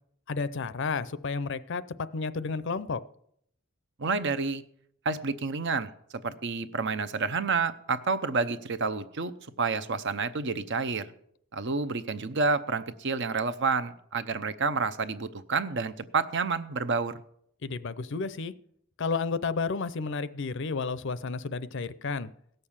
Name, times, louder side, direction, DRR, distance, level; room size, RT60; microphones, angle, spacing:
voice 1, 0.3-1.8 2.1-3.0 17.6-18.5 19.0-22.3, left 4 dB, 60° left, 16 dB, 0.6 m, -31 dB
voice 2, 4.0-4.6 5.0-9.3 9.6-11.1 11.5-17.2, right 4 dB, 60° right, 12 dB, 0.7 m, -29 dB
17.0 x 6.7 x 7.3 m, 0.70 s
head